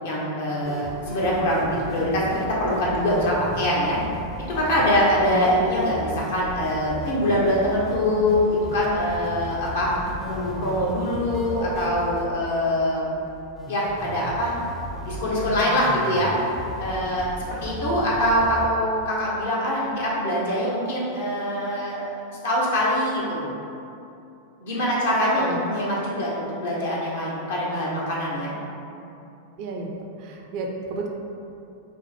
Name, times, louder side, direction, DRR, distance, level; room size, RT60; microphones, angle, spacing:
voice 1, 0.0-4.0 4.5-13.1 13.7-14.6 15.0-16.3 16.8-23.5 24.6-28.5, left 1 dB, 60° left, -5 dB, 0.9 m, -24 dB
sound 1, 0.6-18.7, right 1 dB, 5° left, 0.5 m, -36 dB
voice 2, 29.6-29.9 30.2-31.1, right 3 dB, 45° right, 1 dB, 0.4 m, -33 dB
5.2 x 2.0 x 3.3 m, 2.7 s
figure-of-eight pair, 90°, 0 cm